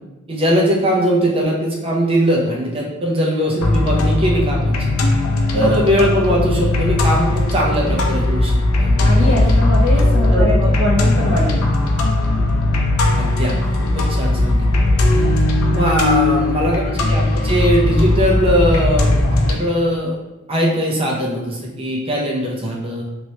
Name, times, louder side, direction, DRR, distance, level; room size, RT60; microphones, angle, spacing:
voice 1, 0.3-4.9 5.5-9.6 10.3-10.7 13.1-15.1 15.7-20.2 20.5-23.0, equal, 25° right, -3 dB, 0.6 m, -20 dB
sound 1, 3.6-19.5, left 2 dB, 80° left, 0.5 m, -17 dB
voice 2, 9.0-11.6 15.7-15.8, left 1 dB, 60° left, -4 dB, 1.0 m, -22 dB
3.1 x 2.9 x 2.8 m, 1.0 s
head